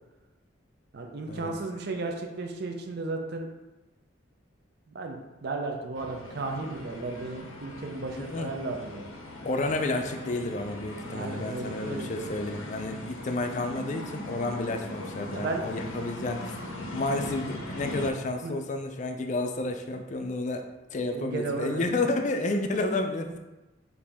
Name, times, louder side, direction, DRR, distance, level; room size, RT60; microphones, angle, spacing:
voice 1, 0.9-3.5 4.9-9.1 11.1-12.4 15.3-15.6 18.4-18.6 21.1-22.0, right 3 dB, 55° right, 3 dB, 0.4 m, -34 dB
sound 1, 5.9-18.1, left 1 dB, 85° left, 0.6 m, -40 dB
voice 2, 8.2-8.5 9.4-16.6 16.9-23.4, left 2 dB, 35° left, 5 dB, 0.4 m, -31 dB
4.9 x 2.6 x 3.4 m, 1.1 s
head